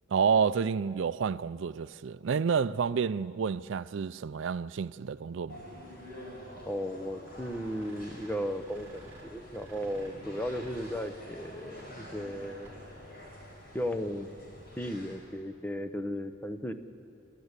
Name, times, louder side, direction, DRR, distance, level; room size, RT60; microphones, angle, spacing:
voice 1, 0.1-5.6, right 6 dB, 75° right, 0.4 m, -29 dB
sound 1, 5.5-15.2, equal, 50° left, 4.9 m, -48 dB
voice 2, 6.6-12.7 13.7-14.3 14.8-16.7, equal, 10° left, 0.8 m, -35 dB
sound 2, 7.3-13.0, right 1 dB, 10° right, 4.3 m, -55 dB
30.0 x 12.5 x 8.2 m
head